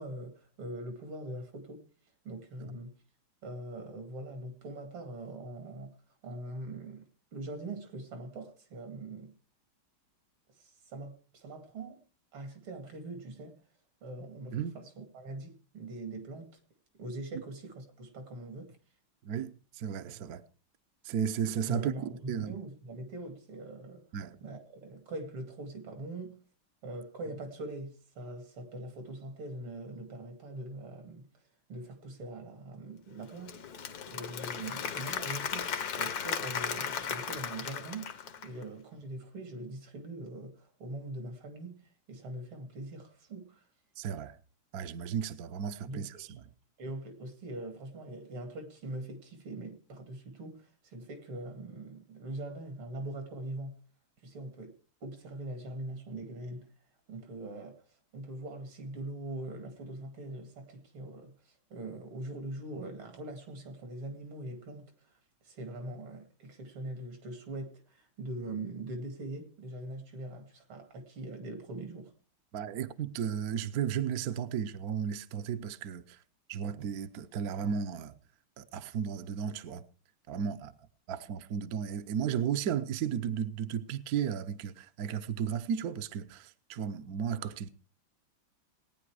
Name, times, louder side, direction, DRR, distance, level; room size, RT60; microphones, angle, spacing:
voice 1, 0.0-1.9 2.2-2.9 3.4-5.9 6.2-7.0 7.3-9.3 10.6-12.0 12.3-13.6 14.0-16.6 17.0-18.8 21.7-24.0 24.4-26.4 26.8-31.3 31.7-33.6 34.1-35.7 36.0-43.6 45.9-46.4 46.8-53.8 54.2-56.7 57.1-57.8 58.1-65.1 65.4-72.1, right 2 dB, 80° right, 3.2 m, -42 dB
voice 2, 19.2-20.4 21.0-22.6 24.1-24.4 44.0-44.4 44.7-46.4 72.5-76.2 76.5-78.1 78.6-79.8 80.3-80.7 81.1-87.7, right 8 dB, 60° right, 1.1 m, -34 dB
Applause / Crowd, 33.2-38.6, left 7 dB, 55° left, 1.3 m, -36 dB
18.5 x 9.6 x 4.8 m
omnidirectional pair, 2.3 m